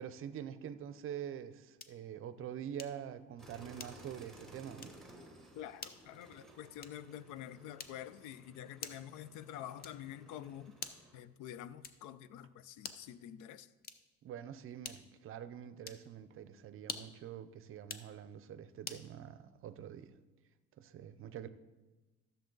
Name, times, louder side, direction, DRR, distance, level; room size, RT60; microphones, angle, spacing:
voice 1, 0.0-4.9 14.2-20.1 20.8-21.5, right 9 dB, 45° right, 0.5 m, -45 dB
sound 1, 1.8-2.1 2.8-3.1 3.8-4.2 4.8-5.1 5.8-6.1 6.8-7.1 7.8-8.2 8.8-9.2 9.8-10.2 10.8-11.2 11.8-12.2 12.8-13.2 13.8-14.2 14.8-15.2 15.8-16.1 16.8-17.2 17.8-18.1 18.8-19.1, left 6 dB, 30° left, 0.6 m, -47 dB
sound 2, 3.4-11.2, right 1 dB, ahead, 1.2 m, -58 dB
voice 2, 5.5-13.7, left 11 dB, 85° left, 0.5 m, -48 dB
13.0 x 6.8 x 3.9 m
cardioid pair, 140°, 29 cm